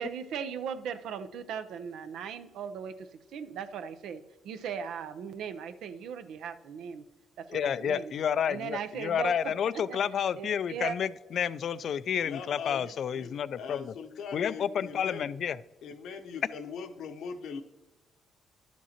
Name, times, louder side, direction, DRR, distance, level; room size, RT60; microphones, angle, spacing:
voice 1, 0.0-7.0 7.4-8.1 8.4-10.0 10.3-11.0, right 7 dB, 80° right, 11 dB, 0.6 m, -38 dB
voice 2, 7.5-13.9 14.3-15.6, left 8 dB, 60° left, 17 dB, 0.3 m, -30 dB
voice 3, 12.2-13.3 13.6-15.2 15.8-17.6, left 5 dB, 80° left, 5 dB, 0.8 m, -41 dB
11.5 x 7.3 x 2.9 m, 1.1 s
cardioid pair, 90°, 0 cm